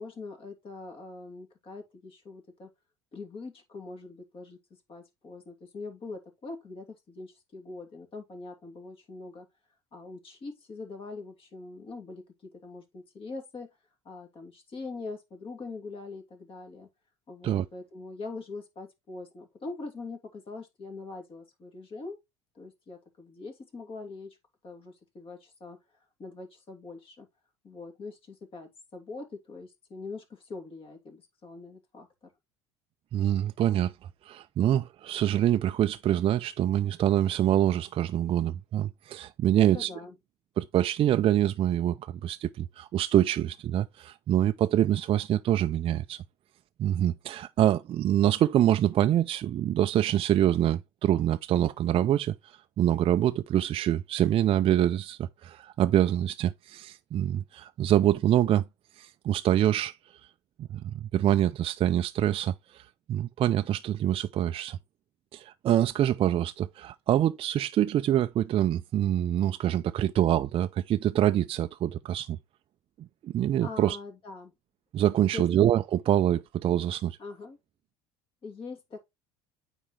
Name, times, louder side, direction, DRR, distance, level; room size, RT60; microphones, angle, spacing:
voice 1, 0.0-2.7 3.1-4.6 4.9-9.5 9.9-13.7 14.0-16.9 17.3-22.2 22.5-24.4 24.6-27.3 27.6-32.3 39.6-40.2 73.6-74.5 75.2-75.5 77.2-77.6 78.4-79.0, left 3 dB, 40° left, 2.8 m, -43 dB
voice 2, 33.1-33.9 34.2-39.9 40.6-46.2 46.8-58.6 59.0-60.2 60.7-64.8 65.3-72.4 73.0-74.0 74.9-77.2, right 11 dB, 40° right, 0.4 m, -25 dB
8.8 x 4.5 x 3.2 m
hypercardioid pair, 80°, 14 cm